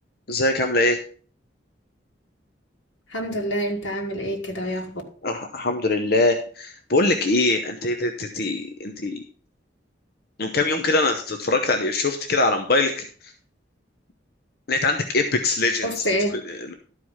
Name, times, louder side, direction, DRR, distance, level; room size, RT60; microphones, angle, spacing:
voice 1, 0.3-1.0 5.2-9.2 10.4-13.3 14.7-16.0 16.4-16.7, left 2 dB, 55° left, 6 dB, 0.8 m, -23 dB
voice 2, 3.1-5.0 15.8-16.4, equal, 85° left, 1 dB, 1.9 m, -27 dB
12.0 x 4.8 x 5.6 m, 0.43 s
head